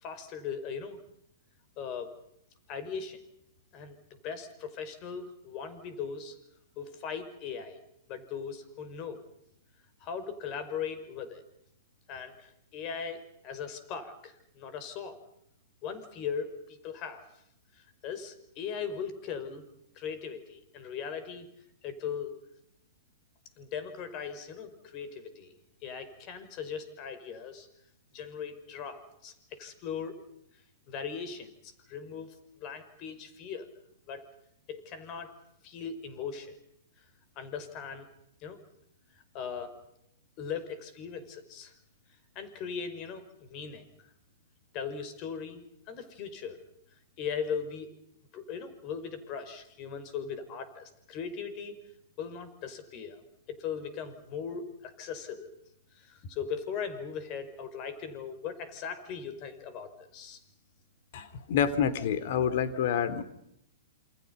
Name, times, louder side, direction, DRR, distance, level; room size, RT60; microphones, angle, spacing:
voice 1, 0.0-1.0 1.8-2.1 2.7-3.2 3.7-6.4 6.8-7.8 8.1-9.2 10.0-11.4 12.1-15.2 15.8-17.3 18.0-19.6 20.0-21.5 21.8-22.4 23.6-25.6 25.8-27.7 28.1-30.2 30.9-33.7 34.1-34.3 34.7-35.3 35.6-36.6 37.4-38.1 38.4-38.6 39.3-39.8 40.4-41.7 42.4-43.9 44.7-46.6 47.2-47.9 48.3-51.8 52.2-53.2 53.5-55.5 56.0-60.4, left 6 dB, 40° left, 13 dB, 5.5 m, -39 dB
voice 2, 61.1-63.2, left 8 dB, 55° left, 12 dB, 3.5 m, -28 dB
29.0 x 27.5 x 5.6 m, 0.77 s
hypercardioid pair, 120°, 0 cm